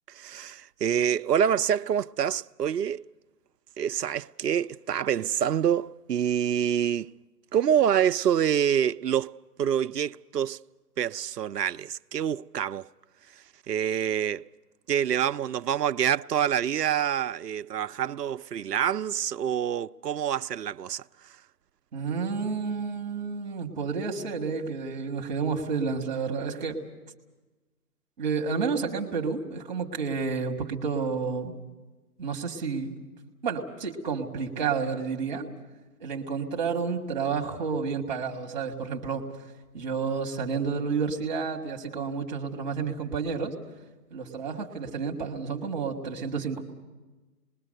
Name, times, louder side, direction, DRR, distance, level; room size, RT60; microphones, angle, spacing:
voice 1, 0.1-3.1 3.8-7.1 7.5-10.6 11.0-12.9 13.3-14.5 14.9-21.4, right 9 dB, 85° right, 0.7 m, -27 dB
voice 2, 21.9-26.8 28.2-31.6 32.2-32.9 33.4-35.5 36.0-39.3 39.7-43.5 44.1-46.6, right 5 dB, 10° right, 1.8 m, -30 dB
26.5 x 21.5 x 6.6 m
hypercardioid pair, 170°, 47 cm